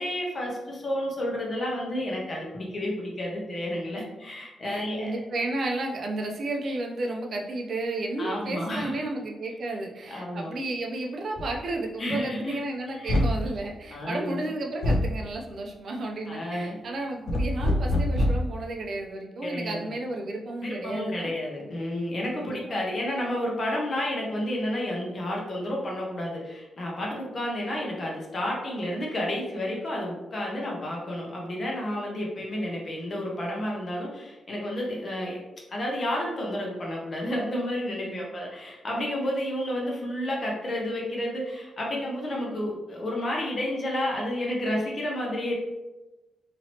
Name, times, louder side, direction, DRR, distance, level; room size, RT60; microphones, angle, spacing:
voice 1, 0.0-5.1 8.2-9.1 10.1-10.5 12.0-12.6 12.9-13.2 13.9-14.4 16.3-16.7 19.4-19.8 20.6-35.4 35.7-45.5, left 1 dB, 35° left, -2 dB, 0.7 m, -31 dB
voice 2, 4.6-21.3 22.4-22.6 38.0-38.3, right 2 dB, 45° right, 1 dB, 0.5 m, -32 dB
sound 1, 11.4-11.6 13.1-13.5 14.8-15.2 17.3-18.5, left 1 dB, 70° left, 0.4 m, -24 dB
2.9 x 2.8 x 2.8 m, 1.1 s
wide cardioid pair, 160°, 0 cm